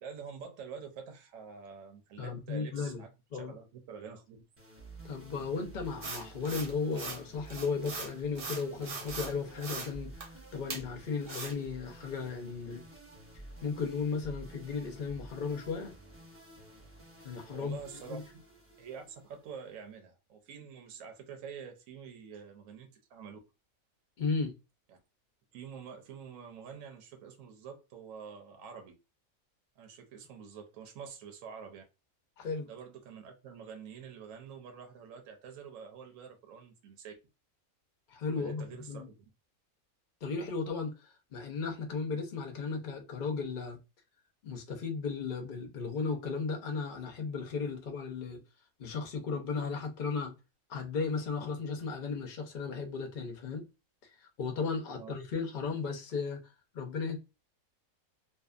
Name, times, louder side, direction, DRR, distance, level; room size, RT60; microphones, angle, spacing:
voice 1, 0.0-4.4 17.5-18.2 18.8-23.4 24.9-25.0 25.5-28.9 29.8-31.8 32.7-37.1 38.4-39.1 55.0-55.1, right 6 dB, 70° right, 1.0 m, -47 dB
voice 2, 2.2-3.0 3.3-3.5 5.0-10.1 10.5-12.8 13.6-15.9 17.2-17.8 18.1-18.2 24.2-24.5 32.4-32.7 38.1-39.1 40.2-43.8 44.4-48.4 48.8-50.3 50.7-53.7 54.2-57.2, left 5 dB, 50° left, 0.6 m, -35 dB
sound 1, 4.6-20.0, right 2 dB, 15° right, 0.5 m, -52 dB
sound 2, 6.0-7.2 7.5-9.3 9.6-9.9 10.2-10.3 10.7-10.8 11.3-11.5, right 4 dB, 50° right, 0.8 m, -40 dB
2.7 x 2.3 x 2.3 m
omnidirectional pair, 1.5 m